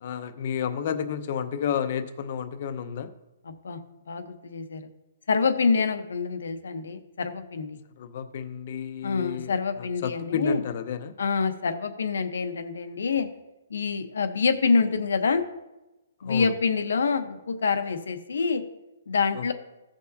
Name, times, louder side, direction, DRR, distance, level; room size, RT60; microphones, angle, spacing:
voice 1, 0.0-3.1 8.0-11.1 16.2-16.5 19.4-19.5, left 8 dB, 35° left, 9 dB, 0.7 m, -31 dB
voice 2, 3.4-3.8 4.1-4.9 5.3-7.8 9.0-10.6 11.2-13.3 13.7-15.4 16.2-18.6 19.1-19.5, left 5 dB, 85° left, 9 dB, 1.0 m, -26 dB
15.5 x 6.3 x 2.8 m, 0.99 s
hypercardioid pair, 175°, 0 cm